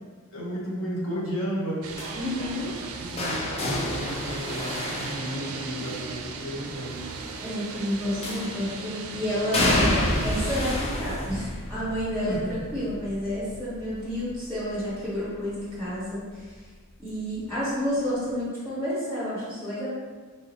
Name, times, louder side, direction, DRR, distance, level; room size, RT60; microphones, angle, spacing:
voice 1, 0.3-1.9 2.9-7.0 12.3-12.6, equal, 65° left, -6 dB, 1.0 m, -33 dB
sound 1, 1.8-10.8, right 4 dB, 70° right, 0.3 m, -37 dB
sound 2, 2.0-6.0 8.2-8.8 9.5-15.3 15.7-16.1 17.3-17.4, left 1 dB, 30° left, 0.4 m, -30 dB
voice 2, 2.1-2.7 7.4-16.6 17.0-19.9, equal, 15° left, -11 dB, 1.2 m, -30 dB
3.3 x 2.7 x 2.8 m, 1.5 s
head